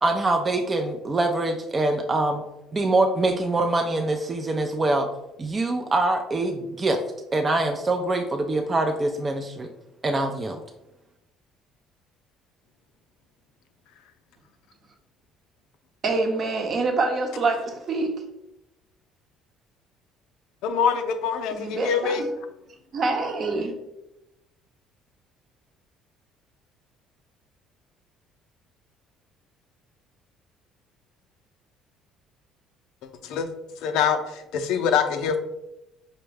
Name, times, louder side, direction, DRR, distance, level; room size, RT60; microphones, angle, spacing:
voice 1, 0.0-2.4 2.7-5.1 5.4-7.0 7.3-9.7 10.0-10.6, right 2 dB, 30° right, 5 dB, 0.5 m, -24 dB
voice 2, 16.0-18.2 21.5-22.3 22.9-23.7, right 3 dB, 50° right, 2 dB, 0.9 m, -26 dB
voice 3, 20.6-22.3 33.2-33.5 33.8-35.4, left 7 dB, 75° left, 8 dB, 0.4 m, -24 dB
5.2 x 2.2 x 3.2 m, 0.89 s
hypercardioid pair, 65°, 0 cm